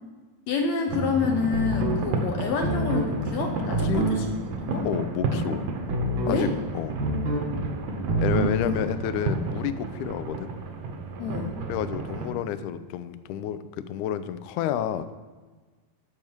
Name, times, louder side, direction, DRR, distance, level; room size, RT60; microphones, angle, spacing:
voice 1, 0.5-4.2 4.6-4.8 6.3-6.5 8.6-8.7 11.2-11.5, left 5 dB, 70° left, 3 dB, 1.8 m, -28 dB
sound 1, 0.9-12.3, right 3 dB, 35° right, 0.7 m, -42 dB
sound 2, 0.9-12.4, right 3 dB, 70° right, 2.0 m, -32 dB
sound 3, 1.5-2.0 2.6-3.1 3.7-4.2 5.9-6.4 7.0-7.5 8.1-8.6, right 2 dB, 90° right, 4.3 m, -26 dB
voice 2, 4.8-5.7 6.3-7.0 8.2-10.5 11.7-15.1, left 10 dB, 85° left, 12 dB, 1.7 m, -30 dB
13.0 x 6.8 x 4.6 m, 1.3 s
omnidirectional pair, 4.1 m